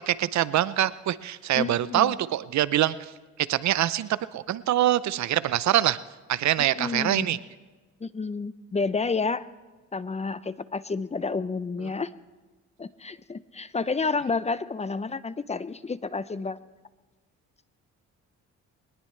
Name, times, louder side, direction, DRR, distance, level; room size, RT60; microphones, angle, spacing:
voice 1, 0.1-2.9 3.5-6.0 6.3-7.4, right 13 dB, 65° right, 17 dB, 0.6 m, -24 dB
voice 2, 1.5-2.1 6.8-7.3 8.0-9.4 9.9-12.1 12.8-16.6, left 4 dB, 20° left, 15 dB, 0.6 m, -30 dB
22.5 x 19.5 x 3.3 m, 1.3 s
cardioid pair, 90°, 30 cm